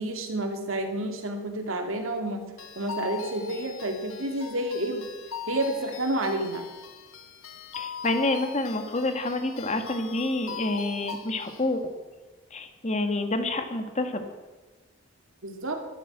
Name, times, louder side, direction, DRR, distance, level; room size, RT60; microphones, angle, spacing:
voice 1, 0.0-2.4 2.8-5.0 5.5-6.7 15.4-15.8, right 1 dB, 75° right, 4 dB, 2.5 m, -29 dB
sound 1, 2.6-11.7, left 6 dB, 85° left, 1.6 m, -40 dB
voice 2, 7.7-11.8 12.5-14.2, left 2 dB, 35° left, 7 dB, 1.5 m, -28 dB
12.5 x 12.0 x 8.8 m, 1.2 s
head